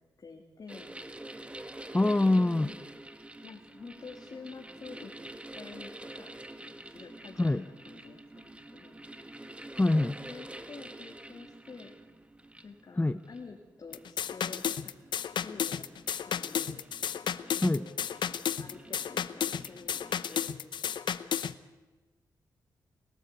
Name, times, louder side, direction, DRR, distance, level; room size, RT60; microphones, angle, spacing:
voice 1, 0.2-0.9 2.2-2.8 3.4-5.1 5.5-9.0 10.2-11.9 12.6-14.9 15.4-15.9 16.2-16.8 17.5-18.1 18.6-21.2, left 4 dB, 55° left, 1 dB, 2.7 m, -48 dB
sound 1, 0.7-20.5, right 1 dB, 15° right, 1.7 m, -48 dB
voice 2, 1.9-2.7 7.4-7.6 9.7-10.2 13.0-13.2 17.6-17.9, left 2 dB, 20° left, 13 dB, 0.7 m, -24 dB
sound 2, 13.9-21.5, left 8 dB, 80° left, 0.8 m, -33 dB
29.5 x 13.5 x 8.2 m, 1.2 s
cardioid pair, 55°, 8 cm